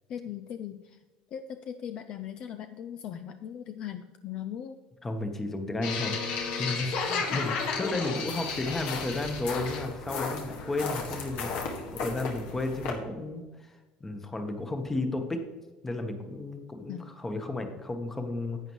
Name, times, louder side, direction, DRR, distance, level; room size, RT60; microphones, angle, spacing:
voice 1, 0.1-1.0 1.3-4.8 7.3-7.5 8.2-8.3 16.9-17.1, left 9 dB, 45° left, 9 dB, 0.4 m, -39 dB
voice 2, 5.0-6.2 6.5-13.7 14.0-15.4 15.8-18.6, left 2 dB, 15° left, 6 dB, 1.1 m, -33 dB
sound 1, 5.8-12.9, left 5 dB, 70° left, 1.7 m, -33 dB
11.0 x 8.4 x 3.1 m, 1.2 s
cardioid pair, 140°, 2 cm